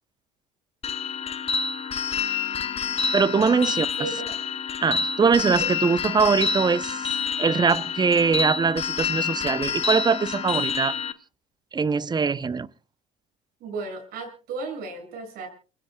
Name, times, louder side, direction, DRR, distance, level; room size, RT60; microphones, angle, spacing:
sound 1, 0.8-11.1, left 5 dB, 35° left, 1.1 m, -28 dB
voice 1, 3.1-4.1 4.8-7.1 7.4-10.9 11.7-12.7, right 5 dB, 25° right, 0.8 m, -22 dB
voice 2, 13.6-15.5, right 4 dB, 65° right, 6.8 m, -34 dB
29.0 x 16.0 x 2.3 m
hypercardioid pair, 70°, 17 cm